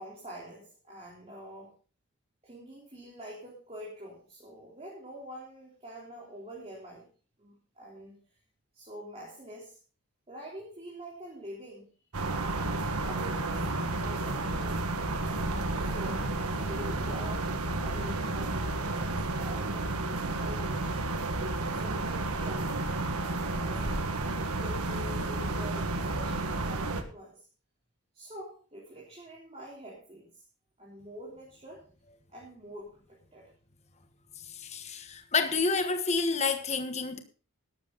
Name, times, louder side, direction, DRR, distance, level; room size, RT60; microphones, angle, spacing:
voice 1, 0.0-1.7 2.4-7.1 7.4-8.1 8.7-9.8 10.3-11.9 12.2-14.9 15.8-19.8 20.2-20.9 21.7-22.7 23.3-27.4 28.1-30.4 30.8-31.8 32.3-33.5, equal, 25° right, 3.6 m, -46 dB
sound 1, 12.1-27.0, right 2 dB, 85° right, 1.6 m, -31 dB
voice 2, 34.5-37.2, left 4 dB, 30° left, 1.2 m, -29 dB
13.0 x 12.0 x 4.0 m
head